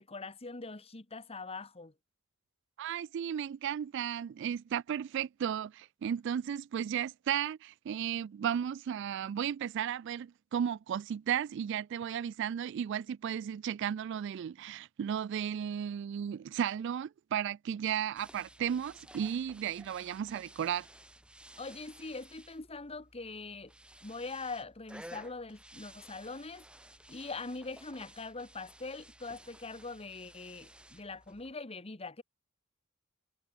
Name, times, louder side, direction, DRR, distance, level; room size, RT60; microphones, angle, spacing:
voice 1, 0.0-1.9 21.6-23.7 24.0-26.6 27.1-32.2, left 3 dB, 30° left, 1.4 m, -42 dB
voice 2, 2.8-20.9, right 9 dB, 60° right, 0.3 m, -34 dB
sound 1, 18.2-31.5, right 1 dB, 5° right, 2.5 m, -55 dB
head